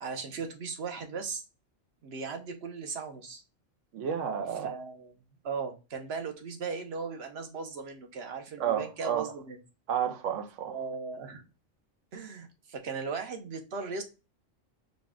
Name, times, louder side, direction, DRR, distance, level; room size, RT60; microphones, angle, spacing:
voice 1, 0.0-1.4 2.0-3.4 4.6-5.1 5.4-9.6 10.7-11.4 12.1-14.0, right 5 dB, 60° right, 1.0 m, -37 dB
voice 2, 3.9-4.7 8.6-9.3 9.9-10.8, right 8 dB, 85° right, 1.0 m, -31 dB
4.0 x 2.3 x 3.6 m
omnidirectional pair, 1.3 m